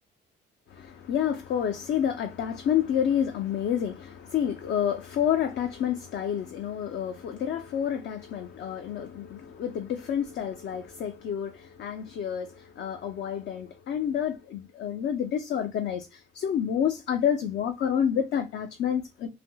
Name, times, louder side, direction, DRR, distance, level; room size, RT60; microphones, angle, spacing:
voice 1, 0.7-19.3, left 9 dB, 65° left, 0.5 m, -29 dB
3.3 x 2.6 x 2.2 m
cardioid pair, 90°, 20 cm